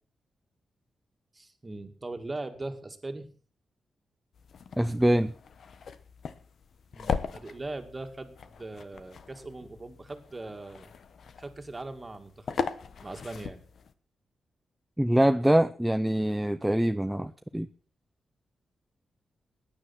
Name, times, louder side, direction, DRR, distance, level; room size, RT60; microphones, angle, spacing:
voice 1, 1.3-3.3 6.9-10.9 11.4-12.6 13.0-13.6, right 2 dB, 25° right, 6 dB, 2.3 m, -40 dB
sound 1, 4.3-13.9, left 6 dB, 65° left, 1.2 m, -39 dB
voice 2, 4.8-5.3 15.0-17.7, right 1 dB, 5° right, 9 dB, 0.6 m, -24 dB
15.5 x 10.0 x 6.0 m, 0.40 s
cardioid pair, 85°, 0 cm